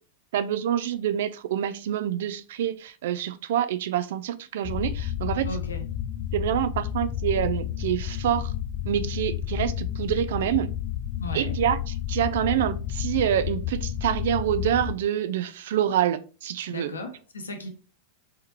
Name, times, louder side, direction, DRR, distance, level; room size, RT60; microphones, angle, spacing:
voice 1, 0.3-5.5 6.3-8.5 8.9-10.7 11.3-16.9, right 10 dB, 55° right, 0.3 m, -26 dB
sound 1, 4.6-14.9, left 11 dB, 35° left, 0.6 m, -31 dB
voice 2, 5.5-5.9 11.2-11.6 16.7-17.7, left 1 dB, 70° left, 0.8 m, -35 dB
4.2 x 3.5 x 2.8 m
figure-of-eight pair, 90°, 0 cm